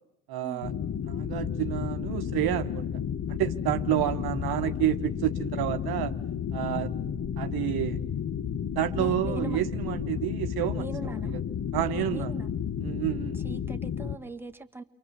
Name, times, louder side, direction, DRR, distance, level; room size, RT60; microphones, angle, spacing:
voice 1, 0.3-0.7 1.0-2.9 3.3-6.1 6.5-6.9 7.4-8.0 8.7-11.4 11.7-12.3 12.8-13.4, right 14 dB, 60° right, 1.1 m, -29 dB
sound 1, 0.6-14.2, left 8 dB, 40° left, 1.3 m, -32 dB
voice 2, 9.0-9.7 10.8-11.4 12.0-12.5 13.3-14.8, right 2 dB, 5° right, 1.6 m, -40 dB
29.5 x 23.0 x 7.2 m
supercardioid pair, 70°, 41 cm